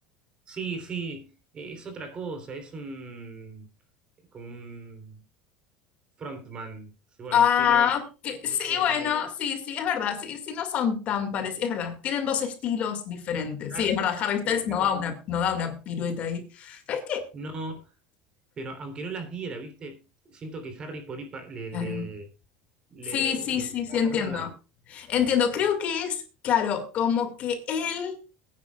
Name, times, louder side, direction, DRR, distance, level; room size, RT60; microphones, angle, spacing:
voice 1, 0.5-3.7 4.3-5.2 6.2-6.9 7.2-7.9 8.5-9.1 13.7-14.0 14.4-15.0 17.3-17.9 18.6-22.3 22.9-24.5, right 3 dB, 30° right, 3.3 m, -38 dB
voice 2, 7.3-17.3 21.7-22.1 23.1-24.5 24.9-28.2, left 8 dB, 45° left, 2.0 m, -27 dB
21.5 x 9.9 x 2.4 m
cardioid pair, 140°, 3 cm